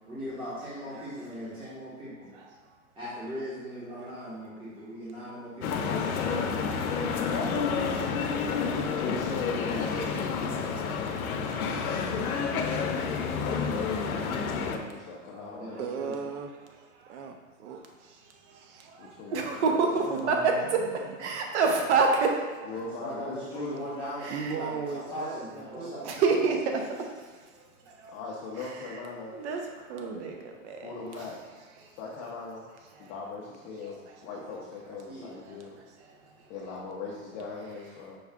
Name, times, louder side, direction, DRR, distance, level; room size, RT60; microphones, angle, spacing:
voice 1, 0.1-2.3 2.9-6.7 9.5-10.9 15.3-16.1 22.7-26.0 35.0-35.4, equal, 10° right, -10 dB, 1.0 m, -39 dB
sound 1, 5.6-14.8, left 5 dB, 85° left, 0.6 m, -29 dB
voice 2, 9.0-10.4 13.3-15.9 19.0-20.5 22.6-23.8 28.1-29.4 30.8-31.4 31.9-32.6 33.0-35.8 36.5-38.2, left 4 dB, 30° left, -4 dB, 0.5 m, -40 dB
voice 3, 15.8-16.5 17.1-17.8 18.5-18.9 20.0-21.0 24.3-26.5, right 6 dB, 85° right, 6 dB, 0.5 m, -38 dB
voice 4, 18.8-20.8 21.2-22.6 24.2-24.5 26.0-27.0 27.9-28.2 29.3-29.6 29.9-30.9 33.0-33.1, right 4 dB, 55° right, 2 dB, 0.8 m, -27 dB
5.4 x 2.3 x 3.5 m, 1.5 s
hypercardioid pair, 130°, 42 cm